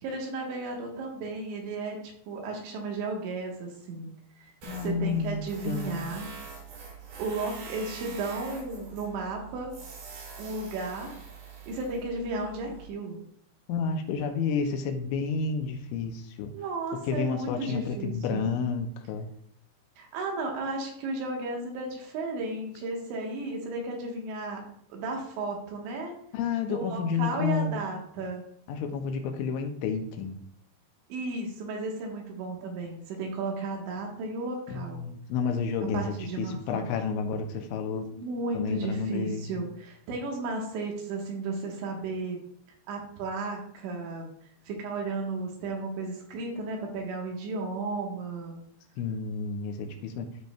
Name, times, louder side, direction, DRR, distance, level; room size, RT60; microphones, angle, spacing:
voice 1, 0.0-2.0 2.3-4.1 4.4-4.5 4.8-6.3 7.2-9.7 10.4-11.2 11.7-13.2 16.5-18.5 20.0-24.6 24.9-26.1 26.7-28.4 31.1-35.0 35.9-36.9 38.1-42.4 42.9-44.3 44.7-48.6, right 3 dB, 75° right, 0 dB, 3.6 m, -34 dB
voice 2, 4.6-6.2 13.7-16.5 17.0-19.3 26.3-27.8 28.7-30.4 34.7-38.1 38.5-39.6 49.0-50.3, left 5 dB, 85° left, 5 dB, 3.2 m, -30 dB
Tools, 4.6-12.9, right 5 dB, 60° right, 2.7 m, -44 dB
13.0 x 5.3 x 2.3 m, 0.67 s
omnidirectional pair, 5.4 m